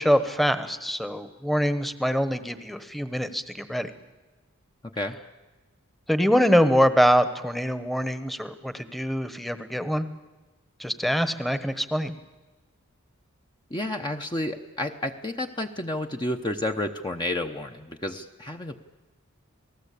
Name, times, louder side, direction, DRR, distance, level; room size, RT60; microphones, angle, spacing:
voice 1, 0.0-3.9 6.1-10.1 10.8-12.2, equal, ahead, 11 dB, 1.1 m, -24 dB
voice 2, 4.8-5.2 13.7-18.7, left 1 dB, 20° left, 4 dB, 0.9 m, -31 dB
28.5 x 19.0 x 8.4 m, 1.2 s
head